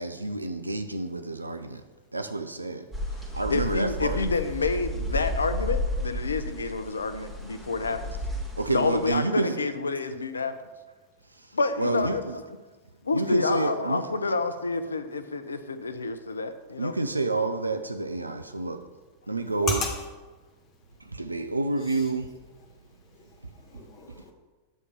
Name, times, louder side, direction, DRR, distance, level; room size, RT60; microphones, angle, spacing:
voice 1, 0.0-1.8 2.1-4.2 8.6-9.6 11.3-12.4 13.1-14.4 16.8-18.9 19.3-19.8 21.0-22.3, right 2 dB, 85° right, 0.4 m, -29 dB
sound 1, 2.9-9.2, left 1 dB, ahead, 1.8 m, -32 dB
voice 2, 3.5-8.1 8.7-10.6 11.5-12.2 13.0-16.9, left 3 dB, 75° left, 0.5 m, -28 dB
voice 3, 19.5-20.0 20.3-21.2 21.8-22.1 22.6-24.3, left 2 dB, 35° left, 1.4 m, -37 dB
8.1 x 3.6 x 5.5 m
figure-of-eight pair, 90°, 0 cm